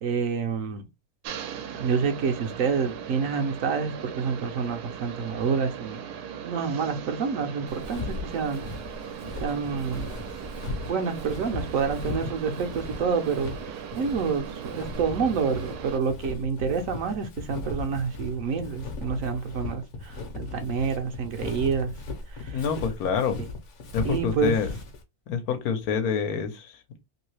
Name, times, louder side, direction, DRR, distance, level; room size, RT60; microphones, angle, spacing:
voice 1, 0.0-0.9 1.8-6.0 6.4-8.7 9.4-10.2 10.8-21.9 22.3-22.6 23.4-23.5 24.0-24.5, right 5 dB, 65° right, 0.9 m, -28 dB
sound 1, 1.2-16.0, right 8 dB, 90° right, 1.1 m, -39 dB
Walk footsteps, 7.7-25.0, left 3 dB, 55° left, 1.0 m, -37 dB
voice 2, 22.5-23.4 23.9-24.7 25.3-27.0, left 6 dB, 75° left, 1.2 m, -27 dB
2.9 x 2.7 x 3.1 m
omnidirectional pair, 1.6 m